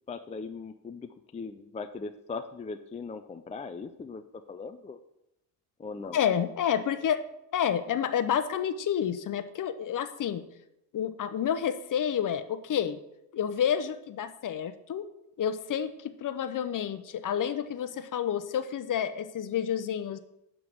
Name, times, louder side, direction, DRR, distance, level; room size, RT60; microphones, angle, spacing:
voice 1, 0.1-5.0 5.8-6.2, left 4 dB, 15° left, 8 dB, 0.4 m, -39 dB
voice 2, 6.1-7.2 7.5-10.4 10.9-13.0 13.3-15.1 15.4-20.2, left 9 dB, 40° left, 11 dB, 0.8 m, -29 dB
10.5 x 3.8 x 6.3 m, 0.85 s
supercardioid pair, 70°, 48 cm